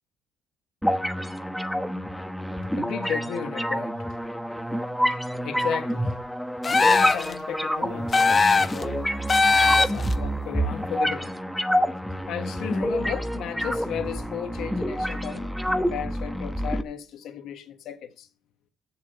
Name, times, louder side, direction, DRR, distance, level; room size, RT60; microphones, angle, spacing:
sound 1, 0.8-16.8, equal, ahead, 1.1 m, -28 dB
voice 1, 2.6-4.1 4.7-4.8 5.4-6.2 6.8-9.2 9.6-11.4 12.3-18.3, left 8 dB, 70° left, 1.4 m, -35 dB
sound 2, 6.6-7.3 8.1-8.8 9.3-10.1, left 4 dB, 30° left, 0.7 m, -19 dB
7.6 x 7.2 x 7.9 m
cardioid pair, 85°, 0 cm